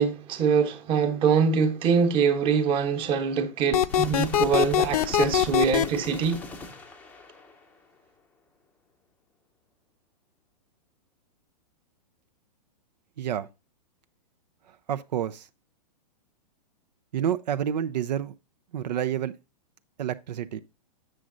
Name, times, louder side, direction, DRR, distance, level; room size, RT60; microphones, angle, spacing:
voice 1, 0.0-6.4, right 6 dB, 25° right, 1.0 m, -24 dB
sound 1, 3.7-5.9, left 11 dB, 65° left, 0.6 m, -22 dB
sound 2, 3.9-8.0, left 3 dB, 5° left, 0.6 m, -41 dB
voice 2, 13.2-13.5 14.9-15.5 17.1-18.3 18.7-19.3 20.0-20.6, right 10 dB, 85° right, 0.6 m, -28 dB
7.6 x 6.3 x 3.8 m
hypercardioid pair, 150°, 21 cm